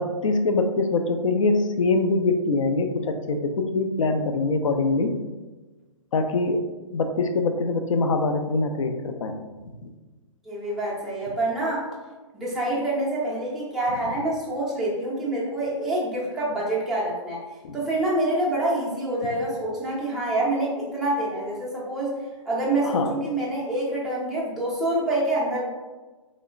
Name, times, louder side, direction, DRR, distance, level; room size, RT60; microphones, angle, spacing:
voice 1, 0.0-5.2 6.1-9.4 9.8-9.9 17.6-17.8 22.8-23.1, left 3 dB, 70° left, 6 dB, 0.4 m, -24 dB
voice 2, 10.4-11.9 12.3-17.4 17.7-22.1 22.5-25.6, right 1 dB, ahead, -7 dB, 0.4 m, -26 dB
2.9 x 2.0 x 2.4 m, 1.2 s
figure-of-eight pair, 130°, 17 cm